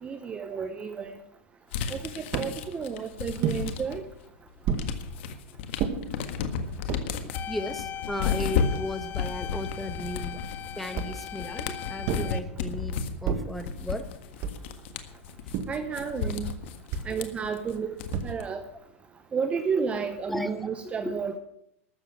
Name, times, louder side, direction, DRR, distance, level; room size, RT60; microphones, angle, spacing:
voice 1, 0.0-1.2 1.9-4.0 15.7-16.5 17.0-18.0 18.2-18.6 19.3-21.4, right 6 dB, 15° right, 9 dB, 0.9 m, -31 dB
sound 1, 1.7-4.1 4.5-18.4, left 6 dB, 60° left, 1.6 m, -33 dB
sound 2, 2.3-2.6 3.4-3.6 4.6-4.9 5.8-6.0 6.7-7.1 7.8-7.9 8.1-9.1 10.9-11.3 12.0-12.4 13.2-13.6 14.4-14.8 15.5-15.9 16.9-17.2 18.1-18.6, right 7 dB, 40° right, 1.7 m, -31 dB
voice 2, 7.2-10.4 10.8-14.1 20.3-20.5 21.0-21.2, left 1 dB, ahead, 9 dB, 1.2 m, -35 dB
sound 3, 7.3-12.4, left 11 dB, 25° left, 0.5 m, -39 dB
13.0 x 7.3 x 8.7 m, 0.77 s
supercardioid pair, 140°, 7 cm